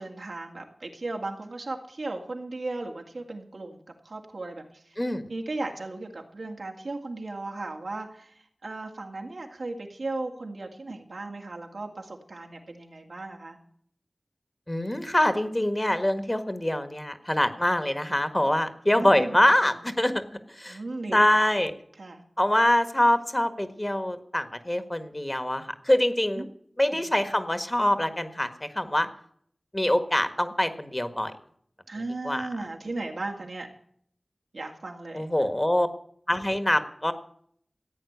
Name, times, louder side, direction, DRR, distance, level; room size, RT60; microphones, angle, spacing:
voice 1, 0.0-5.0 5.3-8.3 8.6-13.6 18.9-19.4 20.7-21.2 22.0-22.2 26.4-26.5 26.9-27.0 31.9-33.7 34.5-35.5, right 2 dB, 85° right, 2 dB, 2.4 m, -36 dB
voice 2, 5.0-5.3 14.7-20.1 20.5-20.8 21.1-21.7 22.4-26.4 26.8-29.1 29.7-31.3 32.2-32.5 35.1-35.9 36.3-37.1, left 1 dB, 20° left, 9 dB, 1.6 m, -24 dB
15.0 x 9.1 x 8.1 m, 0.63 s
wide cardioid pair, 65°, 0 cm